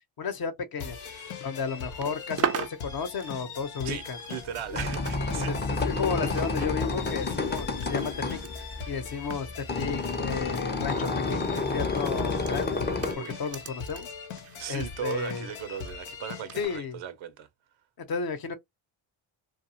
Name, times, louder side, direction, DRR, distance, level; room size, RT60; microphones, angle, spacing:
voice 1, 0.2-1.0 1.4-4.2 4.7-4.8 5.2-8.4 8.9-12.8 13.1-14.1 14.7-15.5 16.6-17.0 18.0-18.6, left 5 dB, 50° left, 0.9 m, -33 dB
sound 1, 0.8-16.8, left 6 dB, 80° left, 0.9 m, -41 dB
sound 2, 1.8-5.1 5.4-10.4 10.7-10.9 11.7-16.0 16.5-16.7, right 8 dB, 35° right, 0.4 m, -39 dB
voice 2, 3.8-5.6 13.1-13.4 14.6-17.5, right 9 dB, 75° right, 0.7 m, -38 dB
sound 3, 4.4-13.1, left 3 dB, 20° left, 0.6 m, -30 dB
2.4 x 2.3 x 2.8 m
cardioid pair, 60°, 48 cm